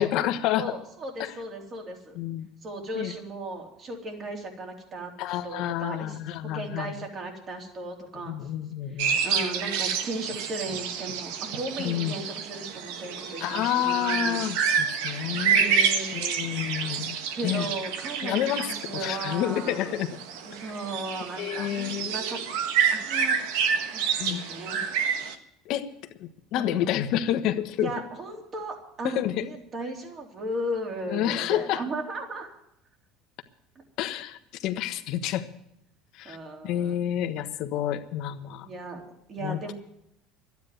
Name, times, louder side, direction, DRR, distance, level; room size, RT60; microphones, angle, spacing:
voice 1, 0.0-0.7 1.2-1.3 2.1-2.5 2.9-3.1 5.2-6.9 8.3-9.2 11.8-12.2 13.4-15.6 16.1-17.7 18.2-20.1 21.4-22.1 24.2-24.4 25.6-25.9 26.2-27.9 29.0-29.4 31.1-31.8 34.0-35.5 36.1-36.4 36.6-38.7 39.4-39.6, left 12 dB, 65° left, 8 dB, 1.2 m, -29 dB
voice 2, 0.6-2.2 2.6-6.2 6.5-8.5 8.9-14.5 15.5-16.6 17.3-19.9 20.4-22.4 22.9-23.4 23.9-24.8 26.6-26.9 27.8-32.6 36.2-37.0 38.5-39.0 39.3-39.7, right 1 dB, 35° right, 1 dB, 3.6 m, -36 dB
sound 1, 9.0-25.3, right 7 dB, 80° right, 1.4 m, -28 dB
12.5 x 9.5 x 9.4 m, 0.78 s
supercardioid pair, 110°, 0 cm